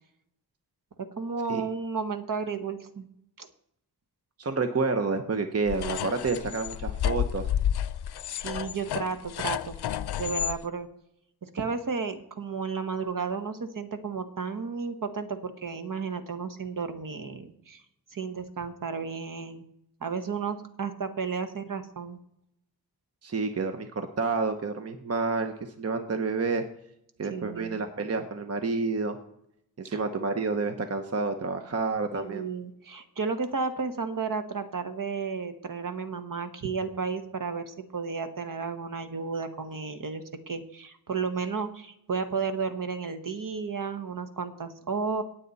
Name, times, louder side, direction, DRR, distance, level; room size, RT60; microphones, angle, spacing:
voice 1, 1.2-3.1 3.4-3.5 8.3-10.9 11.4-17.8 18.1-19.6 20.0-22.2 27.3-27.8 29.9-30.0 32.1-45.2, right 5 dB, 55° right, 9 dB, 1.3 m, -33 dB
voice 2, 4.4-7.5 23.2-26.6 27.2-29.2 29.8-32.5, right 4 dB, 40° right, 7 dB, 0.9 m, -29 dB
sound 1, 5.7-10.6, left 10 dB, 80° left, 0.5 m, -30 dB
18.0 x 7.5 x 4.1 m, 0.77 s
wide cardioid pair, 110°, 38 cm